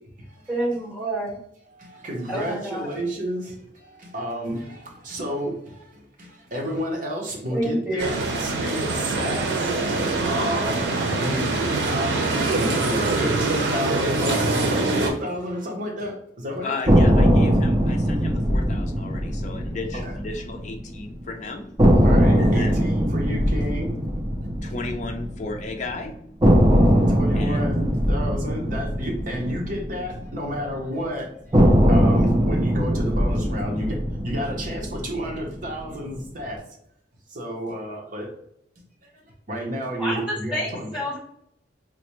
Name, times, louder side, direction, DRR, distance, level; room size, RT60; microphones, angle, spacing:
voice 1, 0.5-1.4 2.3-2.9 7.5-8.1 40.0-40.2 40.5-41.2, right 1 dB, 5° right, -6 dB, 1.2 m, -27 dB
voice 2, 1.7-16.7 19.9-20.1 22.0-23.9 26.7-26.8 27.1-34.0 34.2-36.6 37.3-38.3 39.0-41.0, equal, 50° right, 0 dB, 0.9 m, -31 dB
sound 1, 8.0-15.1, right 2 dB, 90° right, 0.6 m, -24 dB
voice 3, 16.6-21.7 22.4-22.9 24.6-26.1 27.4-27.6, left 3 dB, 40° left, 3 dB, 0.5 m, -34 dB
sound 2, 16.9-20.9 21.2-21.3 21.8-25.9 26.4-30.8 31.5-35.9, equal, 20° right, 0.5 m, -20 dB
4.1 x 2.1 x 3.0 m, 0.72 s
head